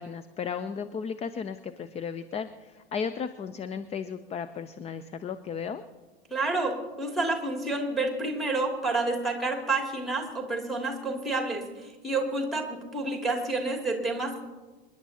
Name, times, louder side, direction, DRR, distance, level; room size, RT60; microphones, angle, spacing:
voice 1, 0.0-5.8, left 6 dB, 20° left, 12 dB, 0.5 m, -35 dB
voice 2, 6.3-14.4, right 2 dB, ahead, 1 dB, 2.7 m, -29 dB
27.5 x 10.5 x 2.9 m, 1.3 s
figure-of-eight pair, 80°, 31 cm